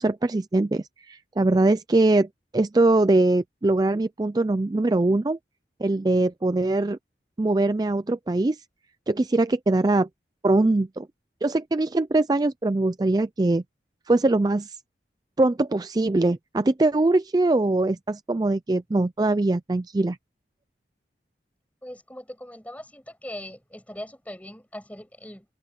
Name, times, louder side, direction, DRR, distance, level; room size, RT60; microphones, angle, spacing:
voice 1, 0.0-2.3 2.5-5.4 5.8-7.0 7.4-8.6 9.1-10.1 10.4-11.1 11.4-13.6 14.1-14.8 15.4-20.2, right 2 dB, 20° right, 0.4 m, -22 dB
voice 2, 21.8-25.5, left 1 dB, 10° left, 7.9 m, -40 dB
head